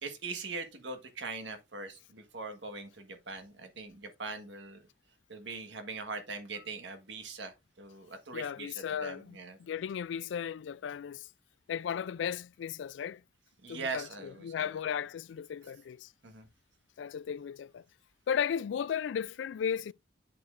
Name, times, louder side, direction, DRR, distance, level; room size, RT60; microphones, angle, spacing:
voice 1, 0.0-4.8 5.3-9.6 13.6-14.8 16.2-16.5, right 4 dB, 75° right, 1.5 m, -41 dB
voice 2, 8.3-11.3 11.7-13.2 13.7-16.1 17.0-17.8 18.3-19.9, left 8 dB, 80° left, 0.3 m, -35 dB
8.2 x 6.6 x 2.5 m
head